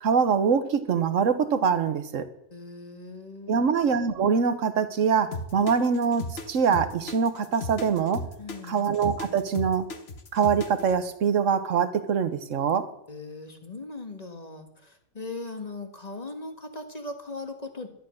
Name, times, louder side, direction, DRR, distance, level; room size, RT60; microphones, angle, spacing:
voice 1, 0.0-2.3 3.5-8.2 8.7-9.9 10.3-12.8, right 6 dB, 60° right, 11 dB, 1.3 m, -24 dB
voice 2, 2.5-3.7 8.4-8.9 13.1-17.9, left 2 dB, 25° left, 6 dB, 1.5 m, -39 dB
sound 1, 5.3-11.0, left 2 dB, 45° left, 1.3 m, -35 dB
12.0 x 11.0 x 6.3 m, 0.76 s
omnidirectional pair, 1.6 m